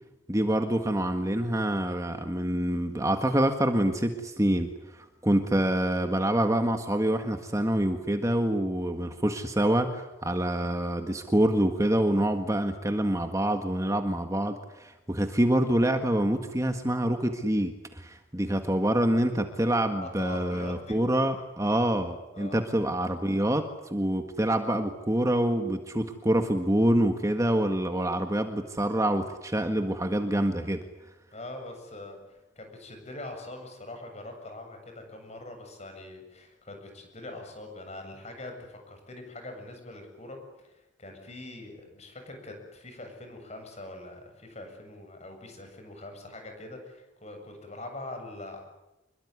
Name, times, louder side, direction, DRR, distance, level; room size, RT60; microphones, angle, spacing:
voice 1, 0.3-30.8, right 1 dB, 15° right, 6 dB, 1.7 m, -26 dB
voice 2, 20.0-21.0 22.3-22.6 31.3-48.6, left 2 dB, 35° left, 5 dB, 7.7 m, -43 dB
27.0 x 22.5 x 9.8 m, 0.98 s
head